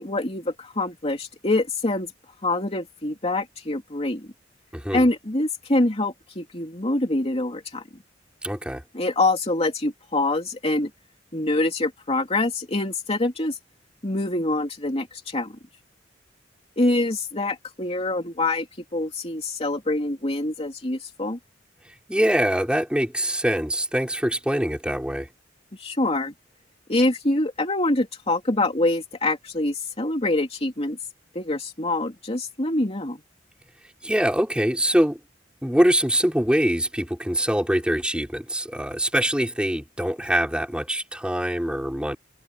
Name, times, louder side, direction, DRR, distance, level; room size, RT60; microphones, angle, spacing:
voice 1, 0.0-2.1 2.4-4.2 4.9-7.8 8.9-10.9 11.3-13.6 14.0-15.5 16.8-18.6 18.9-21.4 25.8-26.3 26.9-31.0 31.3-33.2, left 2 dB, 35° left, 2.9 m, -25 dB
voice 2, 4.7-5.1 8.4-8.8 22.1-25.3 34.0-35.2 35.6-42.2, equal, 5° right, 5.7 m, -23 dB
head